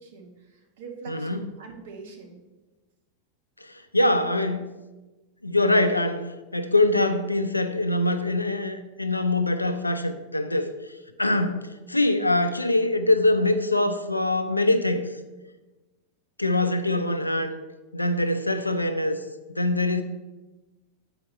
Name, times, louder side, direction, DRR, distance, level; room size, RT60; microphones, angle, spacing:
voice 1, 0.0-2.4, right 4 dB, 55° right, 2 dB, 1.3 m, -43 dB
voice 2, 1.1-1.4 3.6-4.7 5.4-10.7 11.2-15.0 16.4-17.6 17.9-19.2 19.6-20.0, left 2 dB, 85° left, 10 dB, 0.4 m, -23 dB
7.8 x 4.9 x 4.1 m, 1.2 s
figure-of-eight pair, 90°, 0 cm